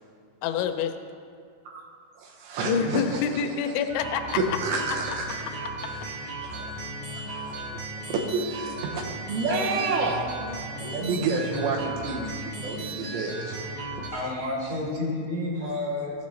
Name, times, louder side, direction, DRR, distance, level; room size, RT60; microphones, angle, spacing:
voice 1, 0.4-0.9 2.6-4.6 9.5-10.6, left 7 dB, 85° left, 6 dB, 2.8 m, -28 dB
voice 2, 2.2-3.2 4.4-5.5 5.8-6.8 7.4-7.5 8.3-10.2 10.8-13.6 15.5-15.9, right 3 dB, 80° right, -1 dB, 2.8 m, -30 dB
sound 1, 3.9-14.1, right 2 dB, 65° right, 2.0 m, -35 dB
voice 3, 14.1-16.1, left 2 dB, 65° left, -8 dB, 0.5 m, -30 dB
15.0 x 8.4 x 3.1 m, 2.3 s
omnidirectional pair, 5.4 m